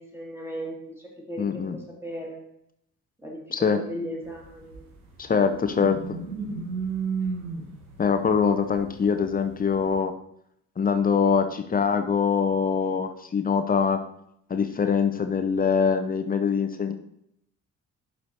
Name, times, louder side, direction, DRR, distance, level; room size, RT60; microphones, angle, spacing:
voice 1, 0.0-2.5 3.2-4.9 5.4-5.6, equal, 5° right, -2 dB, 2.5 m, -37 dB
voice 2, 1.4-1.8 3.5-3.8 5.2-6.2 8.0-10.1 10.8-14.0 14.5-16.9, left 6 dB, 20° left, 7 dB, 0.8 m, -23 dB
sound 1, 4.4-10.0, right 5 dB, 80° right, 1.0 m, -33 dB
11.5 x 4.4 x 2.9 m, 0.74 s
figure-of-eight pair, 40°, 44 cm